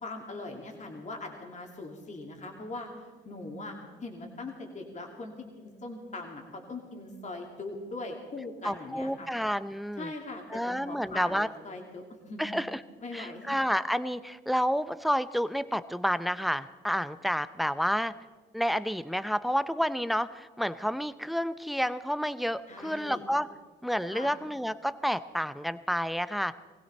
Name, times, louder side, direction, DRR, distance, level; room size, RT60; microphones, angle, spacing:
voice 1, 0.0-2.9 3.2-3.8 4.0-9.3 10.0-12.5 13.0-13.6 22.7-23.2 24.1-24.4, left 2 dB, 35° left, 1 dB, 2.6 m, -41 dB
voice 2, 8.6-10.1 10.5-11.5 12.4-12.8 13.1-18.1 18.5-23.5 23.8-26.5, equal, ahead, 14 dB, 0.6 m, -30 dB
20.0 x 16.0 x 4.2 m, 1.4 s
cardioid pair, 90°, 20 cm